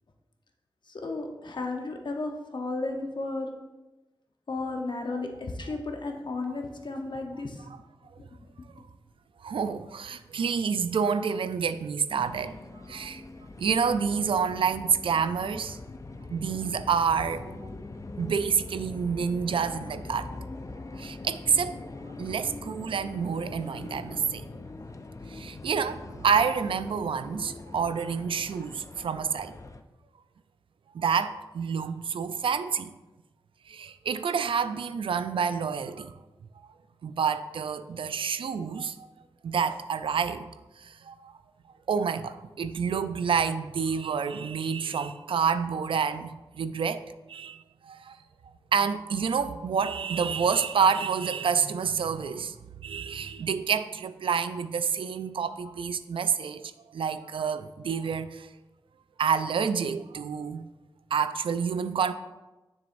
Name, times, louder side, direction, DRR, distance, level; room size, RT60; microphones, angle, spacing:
voice 1, 0.9-3.5 4.5-7.7, left 3 dB, 60° left, 3 dB, 0.9 m, -33 dB
voice 2, 9.4-12.6 12.9-13.2 13.6-15.8 16.3-17.7 18.2-20.3 21.0-21.8 22.2-24.5 25.3-29.6 30.9-32.9 33.7-36.1 37.0-39.1 39.4-40.5 40.8-41.3 41.9-47.0 47.3-48.2 48.7-58.5 59.2-60.6 61.1-62.1, right 6 dB, 75° right, 12 dB, 0.4 m, -28 dB
sound 1, 12.1-29.8, left 2 dB, 35° left, 0.5 m, -42 dB
7.0 x 6.2 x 2.6 m, 1.1 s
cardioid pair, 45°, 9 cm